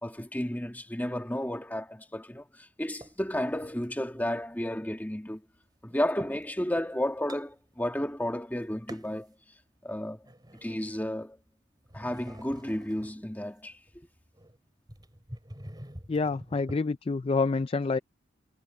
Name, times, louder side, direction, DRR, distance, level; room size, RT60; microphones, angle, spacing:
voice 1, 0.0-5.4 5.8-9.3 9.8-10.3 10.6-11.4 11.9-13.8, left 1 dB, 10° left, 1.5 m, -32 dB
sound 1, 3.0-3.9 4.4-6.5 6.9-8.1 8.4-9.3 9.8-11.5 11.8-16.8, equal, 20° right, 3.2 m, -48 dB
voice 2, 16.1-18.0, left 4 dB, 30° left, 0.3 m, -27 dB
head